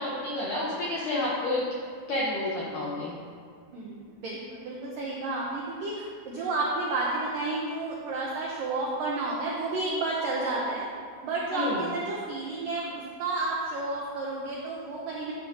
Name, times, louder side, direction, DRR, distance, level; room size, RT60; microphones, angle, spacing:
voice 1, 0.0-1.6 2.1-3.1 11.5-11.8, left 1 dB, 80° left, -5 dB, 1.8 m, -29 dB
voice 2, 3.7-10.9 11.2-15.3, right 2 dB, 85° right, -4 dB, 1.9 m, -31 dB
12.0 x 8.4 x 2.8 m, 2.2 s
omnidirectional pair, 5.3 m